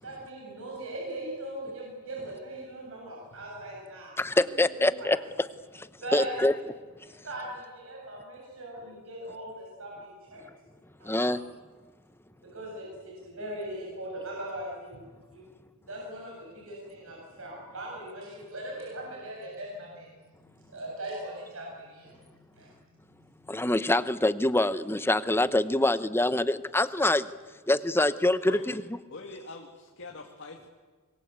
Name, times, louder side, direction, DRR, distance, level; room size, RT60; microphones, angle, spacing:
voice 1, 0.0-4.2 4.5-5.1 6.0-6.5 7.2-10.4 11.0-11.4 12.5-15.0 15.3-15.4 15.9-20.1 20.7-22.2 22.5-22.7, right 1 dB, 70° right, -3 dB, 7.5 m, -40 dB
voice 2, 4.2-5.5 5.7-5.9 6.1-6.5 11.0-11.4 23.5-27.3 27.7-28.8, left 1 dB, 10° left, 14 dB, 0.9 m, -25 dB
voice 3, 28.4-28.8 29.1-30.7, left 3 dB, 60° left, 2 dB, 2.3 m, -43 dB
25.5 x 22.0 x 8.3 m, 1.4 s
head